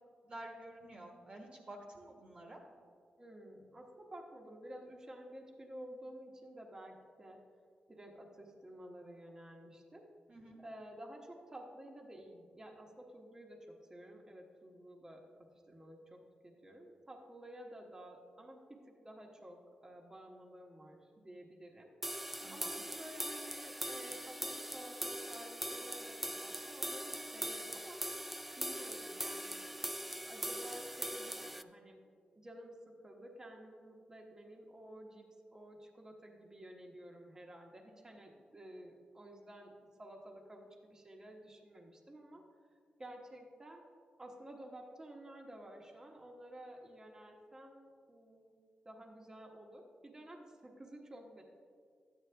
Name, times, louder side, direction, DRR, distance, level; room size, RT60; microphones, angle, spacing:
voice 1, 0.2-2.6 10.3-10.6 22.4-22.7, right 1 dB, 40° right, 0 dB, 1.2 m, -50 dB
voice 2, 3.2-7.4 7.9-10.0 10.6-28.0 28.6-32.0 32.3-35.3 35.5-39.7 40.0-42.5 43.0-43.8 44.2-48.6 48.8-51.4, right 1 dB, 20° right, 0 dB, 1.1 m, -52 dB
sound 1, 22.0-31.6, equal, 5° right, 0.3 m, -41 dB
12.5 x 9.3 x 3.4 m, 2.1 s
wide cardioid pair, 115°, 3 cm